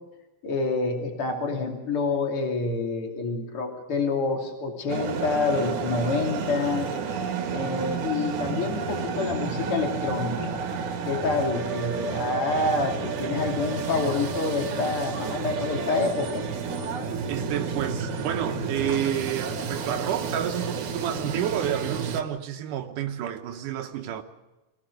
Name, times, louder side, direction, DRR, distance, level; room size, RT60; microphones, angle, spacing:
voice 1, 0.4-6.9 7.5-10.6 11.0-16.4, left 3 dB, 45° left, 3.4 m, -27 dB
sound 1, 4.9-22.2, right 5 dB, 70° right, 2.9 m, -31 dB
voice 2, 17.3-24.2, right 10 dB, 85° right, 2.5 m, -30 dB
24.5 x 17.0 x 6.5 m
omnidirectional pair, 3.6 m